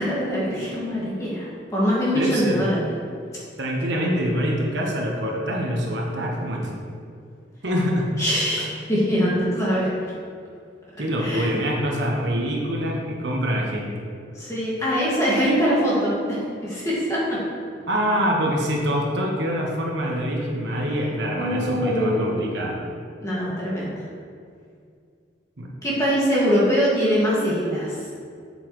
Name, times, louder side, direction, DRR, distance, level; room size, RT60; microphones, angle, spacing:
voice 1, 0.0-2.9 8.2-9.9 11.2-11.5 14.4-17.4 21.4-22.5 23.2-23.9 25.8-28.0, equal, 15° left, -7 dB, 1.9 m, -23 dB
voice 2, 2.1-2.7 3.6-6.7 7.6-8.1 11.0-14.0 17.9-22.8 25.6-25.7, equal, 65° right, -1 dB, 1.1 m, -25 dB
8.1 x 7.0 x 3.1 m, 2.3 s
head